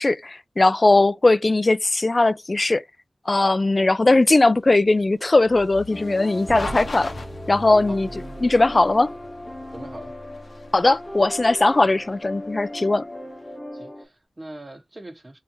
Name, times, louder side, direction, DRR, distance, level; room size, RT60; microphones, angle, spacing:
voice 1, 0.0-2.8 3.3-7.1 7.5-8.1 8.4-9.1 10.7-13.0, left 2 dB, 40° left, 0.4 m, -19 dB
sound 1, 4.0-13.3, left 3 dB, 65° left, 0.7 m, -39 dB
sound 2, 5.9-14.1, left 1 dB, 15° left, 0.8 m, -37 dB
sound 3, 6.5-12.7, right 2 dB, 55° right, 0.5 m, -41 dB
voice 2, 9.7-10.1 13.7-15.4, right 1 dB, 35° right, 1.0 m, -40 dB
3.4 x 2.8 x 2.7 m
wide cardioid pair, 55°, 0 cm